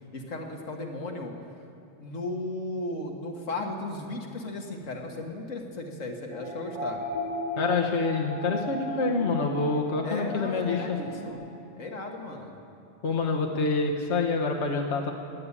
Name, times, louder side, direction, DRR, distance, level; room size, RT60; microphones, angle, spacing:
voice 1, 0.1-1.3 2.0-7.0 10.0-11.4 11.8-12.5, left 2 dB, 80° left, 2 dB, 1.9 m, -35 dB
sound 1, 6.3-11.3, left 1 dB, 65° right, 2.9 m, -36 dB
voice 2, 7.6-10.8 13.0-15.1, left 3 dB, 65° left, 0 dB, 1.5 m, -27 dB
17.0 x 8.6 x 9.8 m, 2.8 s
omnidirectional pair, 1.3 m